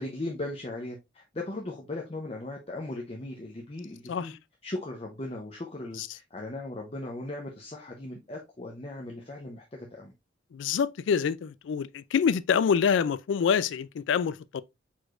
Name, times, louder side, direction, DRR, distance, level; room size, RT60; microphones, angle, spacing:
voice 1, 0.0-4.3 4.6-9.6 9.9-10.1, left 2 dB, 30° left, 0.7 m, -38 dB
voice 2, 10.5-14.6, left 7 dB, 70° left, 0.3 m, -26 dB
4.6 x 4.3 x 2.5 m
head